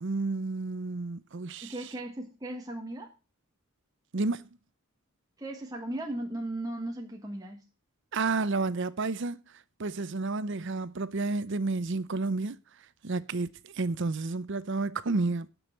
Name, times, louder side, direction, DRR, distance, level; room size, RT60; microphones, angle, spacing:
voice 1, 0.0-1.7 4.1-4.5 8.1-9.4 9.8-12.6 13.0-15.5, right 3 dB, 55° right, 0.7 m, -31 dB
voice 2, 1.6-3.1 5.4-7.6, right 1 dB, 15° right, 1.6 m, -37 dB
9.9 x 6.3 x 7.4 m
head